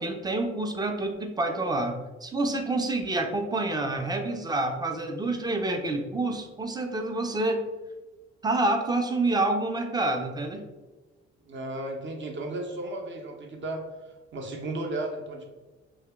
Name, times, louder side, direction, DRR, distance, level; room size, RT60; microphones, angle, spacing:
voice 1, 0.0-7.7 8.4-10.7, right 2 dB, 10° right, 5 dB, 0.5 m, -28 dB
voice 2, 11.5-13.8 14.3-15.5, right 2 dB, 35° right, 2 dB, 0.8 m, -34 dB
3.0 x 2.7 x 3.4 m, 1.2 s
figure-of-eight pair, 45°, 35 cm